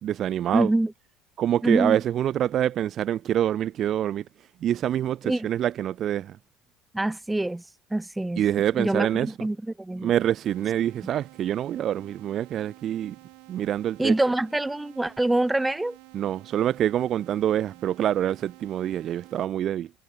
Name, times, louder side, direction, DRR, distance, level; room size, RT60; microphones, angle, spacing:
voice 1, 0.0-0.7 1.4-4.2 4.6-6.4 8.4-9.5 10.0-13.2 13.5-14.1 16.1-19.9, right 11 dB, 50° right, 0.4 m, -26 dB
voice 2, 0.5-0.9 1.6-2.0 5.2-5.5 6.9-7.6 7.9-8.4 8.8-10.1 14.0-16.0, right 2 dB, 10° right, 0.7 m, -25 dB
sound 1, 10.5-19.5, right 34 dB, 80° right, 5.9 m, -51 dB
supercardioid pair, 100°, 0 cm